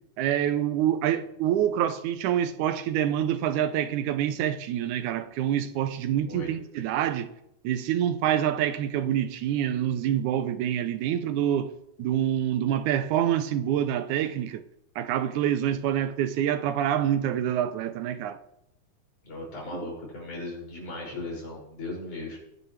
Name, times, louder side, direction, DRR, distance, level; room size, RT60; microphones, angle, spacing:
voice 1, 0.2-7.3 7.6-11.7 12.0-14.6 15.0-18.4 19.8-19.9, right 10 dB, 90° right, 2.3 m, -26 dB
voice 2, 19.2-22.4, left 2 dB, 85° left, 7.6 m, -37 dB
23.5 x 10.0 x 3.3 m
omnidirectional pair, 3.4 m